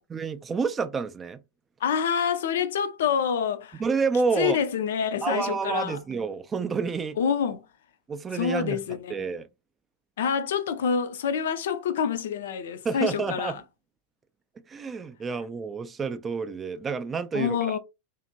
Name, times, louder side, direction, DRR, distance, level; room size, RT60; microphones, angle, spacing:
voice 1, 0.0-1.4 3.8-4.6 5.2-7.2 8.1-9.5 12.8-13.6 14.7-17.8, right 5 dB, 20° right, 0.3 m, -29 dB
voice 2, 1.8-3.8 4.4-6.0 7.2-7.6 8.3-9.1 10.2-13.6 17.3-17.8, left 7 dB, 60° left, 0.4 m, -27 dB
2.8 x 2.5 x 2.6 m
figure-of-eight pair, 90°, 0 cm